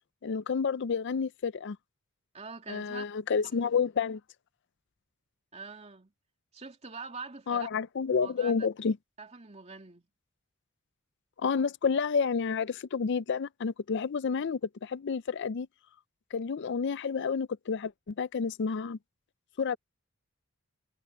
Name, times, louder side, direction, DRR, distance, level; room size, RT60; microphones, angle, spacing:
voice 1, 0.2-1.8 2.7-4.2 7.5-9.0 11.4-15.7 16.3-19.0 19.6-19.8, left 5 dB, 55° left, 0.4 m, -30 dB
voice 2, 2.3-3.1 5.5-6.1 6.5-7.7 8.2-8.7 9.2-10.1, right 4 dB, 30° right, 2.5 m, -44 dB
head